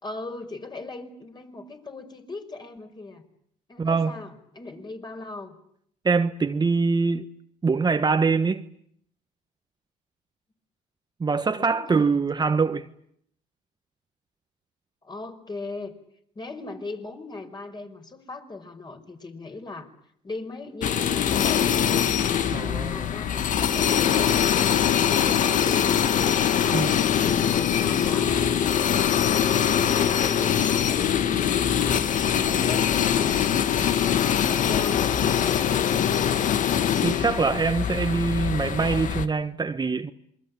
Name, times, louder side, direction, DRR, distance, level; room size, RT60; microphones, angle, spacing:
voice 1, 0.0-3.2 3.7-5.6 11.6-12.3 15.0-15.9 16.4-19.9 20.2-22.1 22.9-24.5 25.2-26.0 26.6-28.4 29.2-33.1 34.0-36.2, left 3 dB, 30° left, 5.5 m, -39 dB
voice 2, 3.8-4.1 6.0-7.2 7.6-8.6 11.2-12.9 22.5-23.1 26.7-26.9 37.0-40.1, right 4 dB, 30° right, 1.3 m, -24 dB
sound 1, 20.8-39.3, left 9 dB, 60° left, 1.7 m, -23 dB
27.5 x 22.5 x 8.7 m
supercardioid pair, 80°, 15 cm